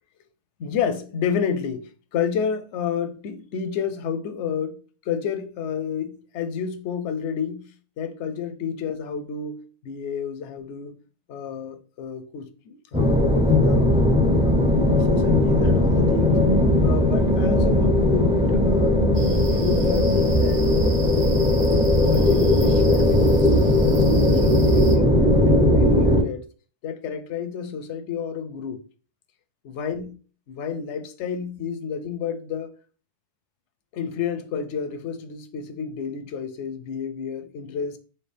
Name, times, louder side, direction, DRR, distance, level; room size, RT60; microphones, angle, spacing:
voice 1, 0.6-4.8 5.1-7.7 8.0-10.9 11.3-13.8 14.4-16.4 16.8-20.6 21.1-25.1 25.4-26.4 26.8-28.8 29.6-30.1 30.5-32.7 33.9-38.0, left 6 dB, 90° left, 0.9 m, -30 dB
sound 1, 12.9-26.2, left 1 dB, 10° right, 0.4 m, -18 dB
sound 2, 19.1-25.0, right 4 dB, 70° right, 1.1 m, -39 dB
4.4 x 2.8 x 3.3 m
omnidirectional pair, 1.1 m